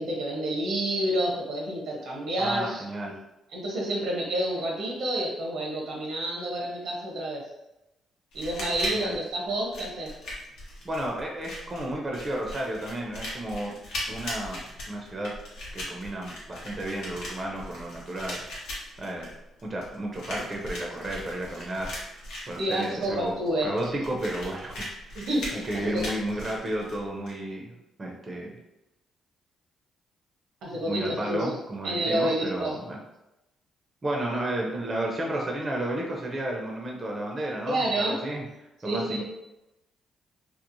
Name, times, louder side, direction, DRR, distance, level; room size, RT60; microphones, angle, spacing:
voice 1, 0.0-2.8 3.5-7.4 8.3-10.2 22.6-23.8 25.1-26.0 30.6-31.5 31.8-32.8 37.7-38.2 38.8-39.2, right 1 dB, 75° right, -1 dB, 0.8 m, -29 dB
voice 2, 2.4-3.1 8.9-9.2 10.8-13.7 14.1-15.3 15.7-18.4 19.0-19.3 19.6-21.9 22.5-23.3 23.6-24.8 25.5-27.7 28.0-28.6 30.8-33.0 34.0-38.4 38.8-39.2, right 1 dB, 30° right, -1 dB, 0.5 m, -32 dB
sound 1, 8.3-27.3, left 1 dB, 90° left, 0.9 m, -39 dB
2.9 x 2.0 x 2.6 m, 0.93 s
cardioid pair, 90°, 0 cm